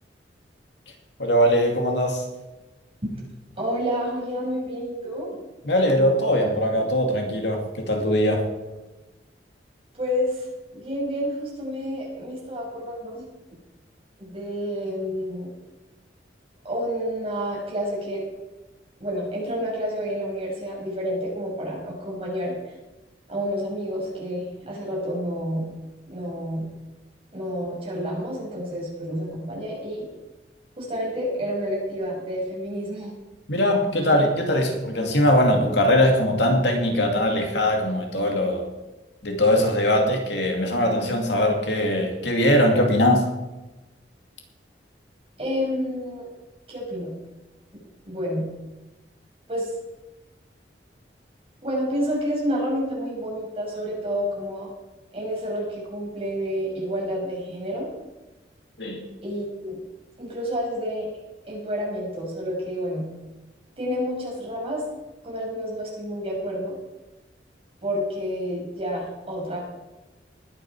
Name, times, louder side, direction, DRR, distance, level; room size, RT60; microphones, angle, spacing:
voice 1, 1.2-2.3 5.6-8.4 33.5-38.7 39.2-43.2 58.8-59.0, left 1 dB, 75° left, 2 dB, 2.5 m, -21 dB
voice 2, 3.6-5.3 10.0-10.5 10.7-13.2 14.2-15.5 16.6-18.2 19.0-22.5 23.3-25.7 26.1-26.7 27.3-30.0 30.8-33.1 34.5-34.6 45.4-46.3 46.7-47.1 48.0-48.5 49.5-49.7 51.6-54.7 55.1-57.9 59.2-59.8 60.2-61.1 61.4-63.1 63.8-64.8 65.2-66.8 67.8-69.6, equal, 35° right, -4 dB, 6.3 m, -29 dB
20.0 x 9.1 x 4.8 m, 1.1 s
head